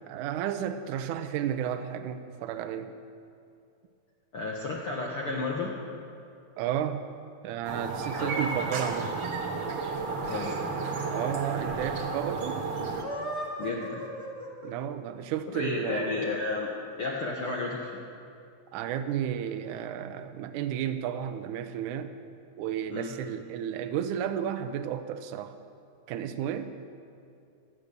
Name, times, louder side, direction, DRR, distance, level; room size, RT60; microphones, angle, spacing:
voice 1, 0.1-3.0 6.6-7.1 7.4-9.2 11.1-12.6 14.6-16.2 18.7-22.1 22.6-25.6 26.1-26.7, right 9 dB, 85° right, 8 dB, 1.8 m, -32 dB
voice 2, 4.3-5.8 8.2-8.4 10.2-10.7 13.6-14.1 15.5-16.7 17.0-18.0 22.9-23.2, left 3 dB, 65° left, -2 dB, 1.3 m, -32 dB
sound 1, 7.6-13.0, right 4 dB, 60° right, 1.4 m, -32 dB
sound 2, 7.8-11.2 11.4-11.5 11.7-11.8 12.8-14.9, right 1 dB, 15° right, 1.3 m, -39 dB
16.0 x 13.0 x 6.6 m, 2.5 s
omnidirectional pair, 4.5 m